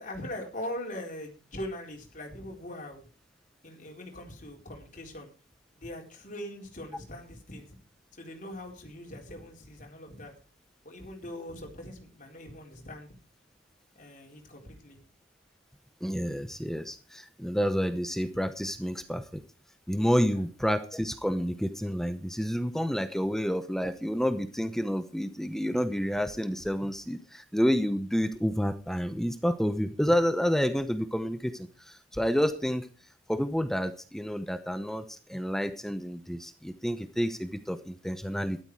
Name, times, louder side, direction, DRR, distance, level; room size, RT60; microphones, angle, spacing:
voice 1, 0.0-3.0 3.6-5.3 5.7-7.7 8.1-10.3 10.8-13.1 14.0-15.0 20.3-20.4, left 1 dB, 45° left, 1 dB, 4.2 m, -41 dB
voice 2, 16.0-19.4 19.9-32.9 33.3-38.6, equal, ahead, 10 dB, 0.8 m, -29 dB
13.5 x 12.5 x 4.7 m, 0.35 s
head